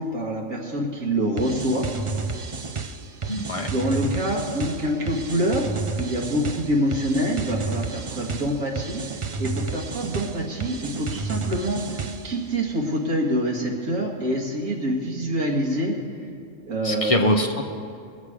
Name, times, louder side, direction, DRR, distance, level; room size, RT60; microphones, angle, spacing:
voice 1, 0.0-1.9 3.7-9.0 9.4-12.0 12.2-16.0 16.7-17.1, equal, 90° right, -2 dB, 2.2 m, -26 dB
sound 1, 1.4-12.4, right 4 dB, 45° right, 0.4 m, -31 dB
voice 2, 3.3-3.7 16.8-17.6, left 1 dB, 30° left, 3 dB, 0.7 m, -23 dB
20.0 x 7.3 x 4.9 m, 2.4 s
omnidirectional pair, 1.4 m